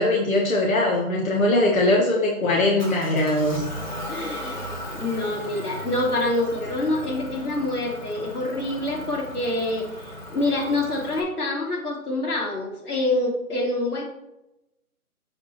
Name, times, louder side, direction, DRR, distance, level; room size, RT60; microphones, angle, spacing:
voice 1, 0.0-3.6, left 1 dB, 65° left, -1 dB, 1.6 m, -21 dB
Motor vehicle (road) / Engine, 2.8-11.2, equal, 30° left, 1.1 m, -37 dB
voice 2, 4.1-4.6 4.9-14.0, left 2 dB, 90° left, -1 dB, 2.9 m, -26 dB
7.1 x 5.0 x 4.4 m, 0.91 s
hypercardioid pair, 180°, 44 cm